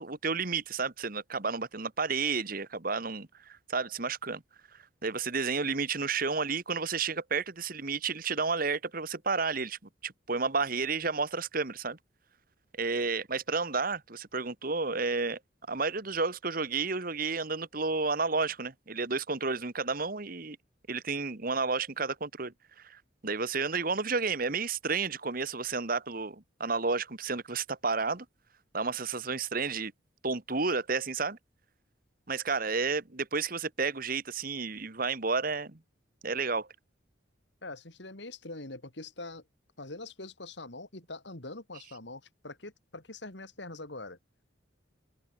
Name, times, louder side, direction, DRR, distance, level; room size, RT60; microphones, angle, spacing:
voice 1, 0.0-4.4 4.7-12.0 12.8-15.4 15.7-20.6 20.9-28.2 28.7-29.9 30.2-31.4 32.3-35.8 36.2-36.7, right 4 dB, 45° right, 1.5 m, -31 dB
voice 2, 37.6-39.4 39.8-44.2, left 2 dB, 65° left, 3.2 m, -43 dB
open air
head